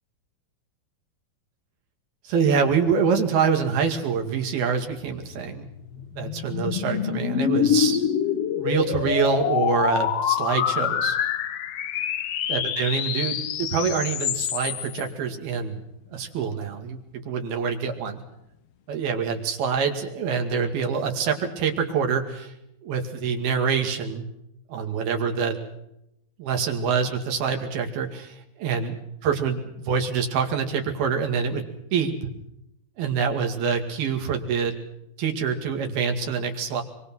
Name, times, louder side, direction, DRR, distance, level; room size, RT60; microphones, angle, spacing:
voice 1, 2.2-5.7 6.1-8.0 8.6-11.2 12.5-15.8 16.1-18.2 18.9-22.5 22.8-24.3 24.7-25.6 26.4-28.9 29.2-31.6 31.9-32.2 33.0-34.7 35.2-36.8, right 6 dB, 80° right, 4 dB, 4.2 m, -25 dB
sound 1, 5.3-15.0, left 9 dB, 75° left, 1.4 m, -26 dB
25.0 x 24.5 x 6.2 m, 0.82 s
omnidirectional pair, 4.3 m